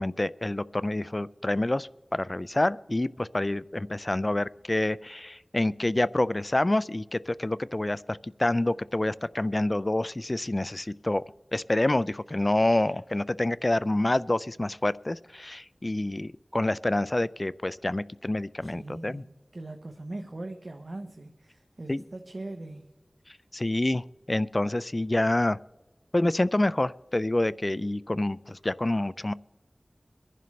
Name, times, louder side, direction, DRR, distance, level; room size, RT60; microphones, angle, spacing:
voice 1, 0.0-11.2 11.5-19.2 21.9-22.0 23.5-25.6 26.1-29.3, left 1 dB, 40° left, 18 dB, 0.3 m, -27 dB
voice 2, 18.6-22.9, right 2 dB, 65° right, 5 dB, 0.9 m, -41 dB
24.5 x 11.0 x 3.2 m, 1.2 s
wide cardioid pair, 50°, 0 cm